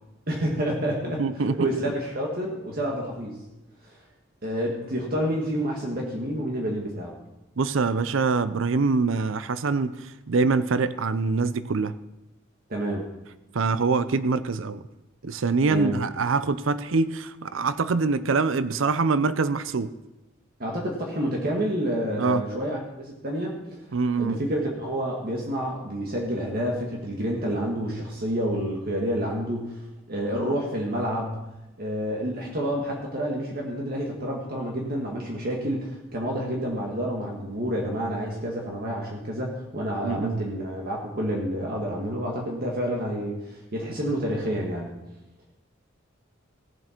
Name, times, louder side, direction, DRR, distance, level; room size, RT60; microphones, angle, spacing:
voice 1, 0.3-3.4 3.8-3.9 4.4-7.1 12.7-13.1 15.7-16.0 20.6-23.8 24.2-29.8 30.1-31.4 31.8-44.9, equal, 50° right, -1 dB, 1.7 m, -29 dB
voice 2, 1.2-1.7 7.6-9.9 10.3-11.9 13.5-14.8 15.2-19.9 22.2-22.4 23.9-24.4 40.0-40.4, right 4 dB, 70° right, 14 dB, 0.6 m, -24 dB
17.5 x 7.7 x 4.5 m, 0.99 s
head